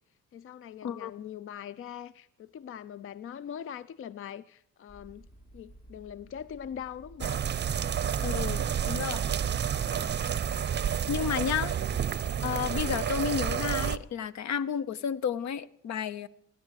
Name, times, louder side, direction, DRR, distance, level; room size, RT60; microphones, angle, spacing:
voice 1, 0.3-5.3 5.5-7.4, left 9 dB, 45° left, 0.5 m, -42 dB
sound 1, 4.9-12.6, right 1 dB, 25° left, 1.9 m, -53 dB
sound 2, 7.2-14.0, right 8 dB, 35° right, 0.7 m, -30 dB
voice 2, 8.2-9.2 11.1-11.7 12.4-16.3, left 8 dB, 65° left, 0.8 m, -32 dB
17.5 x 11.0 x 6.5 m
cardioid pair, 90°, 30 cm